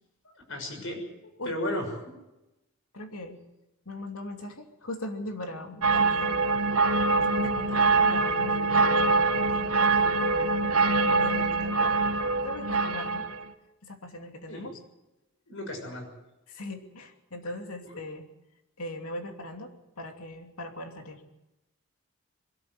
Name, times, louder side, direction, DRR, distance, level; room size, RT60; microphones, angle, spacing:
voice 1, 0.5-2.1 14.5-14.7 15.5-16.1 17.9-18.0, left 1 dB, 65° left, 4 dB, 6.3 m, -35 dB
voice 2, 2.9-3.4 3.9-6.4 7.2-10.8 11.0-12.1 12.4-13.3 13.8-14.8 16.5-18.3 18.8-21.3, left 1 dB, 85° left, 4 dB, 2.8 m, -40 dB
sound 1, 5.8-13.4, right 3 dB, 85° right, 1.5 m, -24 dB
23.0 x 13.0 x 9.5 m, 0.96 s
head